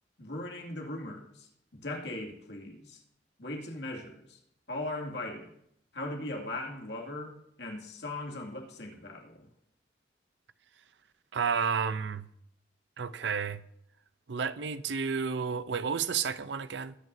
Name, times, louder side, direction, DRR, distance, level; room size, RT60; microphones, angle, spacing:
voice 1, 0.2-3.0 3.4-4.4 4.7-5.6 5.9-9.5, left 1 dB, 80° left, 2.3 m, -39 dB
voice 2, 11.3-12.2 13.0-13.6 14.3-16.9, right 6 dB, 85° right, 0.6 m, -31 dB
21.5 x 9.2 x 2.7 m
head